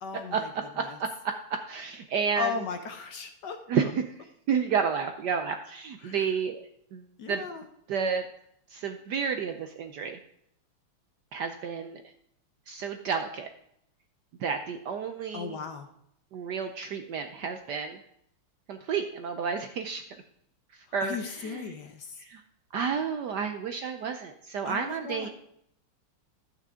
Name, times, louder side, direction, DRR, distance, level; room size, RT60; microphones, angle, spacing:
voice 1, 0.0-1.0 2.4-3.9 6.0-6.3 7.2-7.6 15.3-15.9 21.0-22.2 24.6-25.3, left 6 dB, 60° left, 7 dB, 1.3 m, -37 dB
voice 2, 1.7-2.6 3.7-4.1 4.5-7.4 7.9-8.2 8.7-10.2 11.3-12.0 12.7-13.5 14.4-15.6 16.3-18.0 18.7-20.0 20.9-21.7 22.2-22.4 22.7-25.3, right 6 dB, 70° right, 6 dB, 1.0 m, -31 dB
12.0 x 8.3 x 3.6 m, 0.73 s
omnidirectional pair, 2.4 m